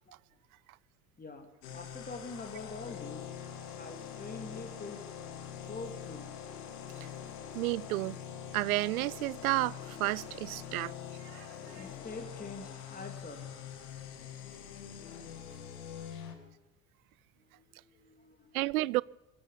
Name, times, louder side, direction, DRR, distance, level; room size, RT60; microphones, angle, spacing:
sound 1, 1.6-16.4, left 8 dB, 65° left, 2.2 m, -44 dB
voice 1, 1.7-3.2 3.8-5.1 5.7-6.3 11.8-13.4 16.0-16.5 17.5-18.4, left 3 dB, 20° left, 2.7 m, -45 dB
voice 2, 7.5-8.2 8.5-10.9 11.3-11.9 18.5-19.0, right 19 dB, 65° right, 0.5 m, -32 dB
27.0 x 9.5 x 5.6 m
figure-of-eight pair, 65°, 48 cm